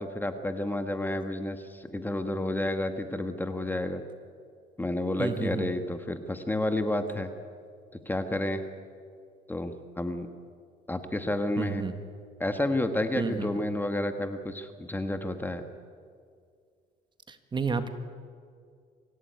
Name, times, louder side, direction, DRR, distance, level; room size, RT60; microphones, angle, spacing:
voice 1, 0.0-4.0 4.8-7.3 8.0-8.6 9.5-10.3 10.9-11.9 12.4-15.6, left 1 dB, 10° left, 7 dB, 1.5 m, -30 dB
voice 2, 5.2-5.7 11.6-11.9 13.2-13.5 17.3-17.9, right 4 dB, 25° right, 9 dB, 1.7 m, -31 dB
25.0 x 16.5 x 9.5 m, 2.2 s
cardioid pair, 110°, 17 cm